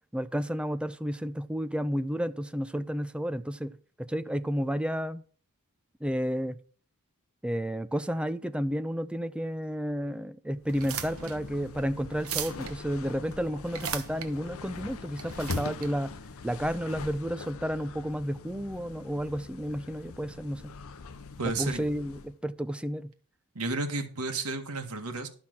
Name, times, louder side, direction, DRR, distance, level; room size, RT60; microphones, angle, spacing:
voice 1, 0.1-3.7 4.0-5.2 6.0-6.6 7.4-16.1 16.4-20.7 21.6-23.1, equal, 5° right, 0.5 m, -31 dB
sound 1, 10.6-22.4, left 4 dB, 65° left, 0.7 m, -42 dB
sound 2, 10.6-17.1, right 8 dB, 65° right, 1.1 m, -39 dB
voice 2, 21.4-21.8 23.5-25.3, right 3 dB, 85° right, 1.6 m, -32 dB
11.5 x 5.9 x 5.8 m
head